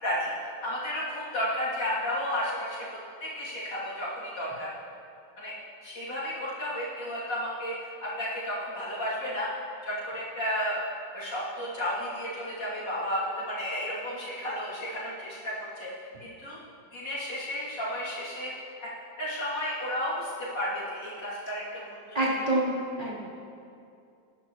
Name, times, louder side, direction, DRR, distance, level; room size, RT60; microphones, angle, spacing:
voice 1, 0.0-4.7 5.4-5.5 5.8-9.5 9.8-10.8 11.1-15.9 16.2-16.6 16.9-18.9 19.2-22.0 22.3-22.4, equal, 70° left, -8 dB, 3.8 m, -33 dB
voice 2, 22.1-23.2, right 1 dB, 25° right, -11 dB, 3.8 m, -27 dB
20.5 x 11.0 x 3.2 m, 2.5 s
omnidirectional pair, 2.0 m